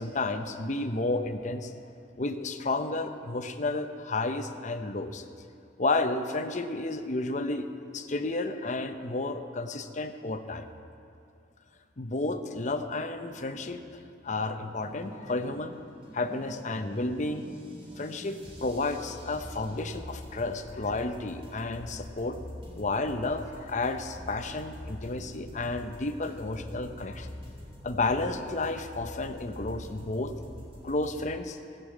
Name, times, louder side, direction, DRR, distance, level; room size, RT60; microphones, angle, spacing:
voice 1, 0.0-1.7 2.2-5.2 5.8-7.7 7.9-10.7 12.0-15.8 16.1-17.6 18.0-22.4 22.8-27.3 27.8-31.6, left 2 dB, 45° left, 7 dB, 0.8 m, -32 dB
sound 1, 14.6-31.2, left 1 dB, 35° right, 3.5 m, -45 dB
17.5 x 7.0 x 8.3 m, 2.4 s
head